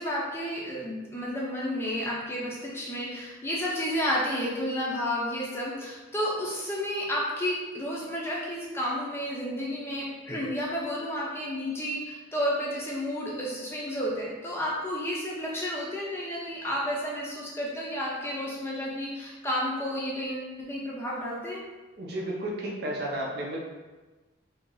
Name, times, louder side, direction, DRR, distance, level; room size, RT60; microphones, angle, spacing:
voice 1, 0.0-21.6, equal, 10° left, -5 dB, 0.6 m, -31 dB
voice 2, 22.0-23.6, right 1 dB, 55° right, -2 dB, 0.6 m, -32 dB
3.0 x 2.8 x 3.8 m, 1.2 s
head